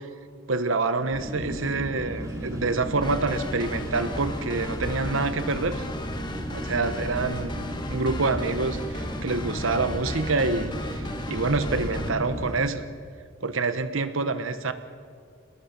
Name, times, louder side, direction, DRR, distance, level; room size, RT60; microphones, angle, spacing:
voice 1, 0.5-5.8 6.5-7.6 7.9-12.8 13.4-14.7, right 3 dB, 75° right, 11 dB, 1.2 m, -27 dB
sound 1, 1.1-12.5, equal, 15° right, 2.7 m, -34 dB
sound 2, 3.0-12.1, left 1 dB, 20° left, 1.4 m, -36 dB
27.5 x 19.5 x 6.0 m, 2.2 s
head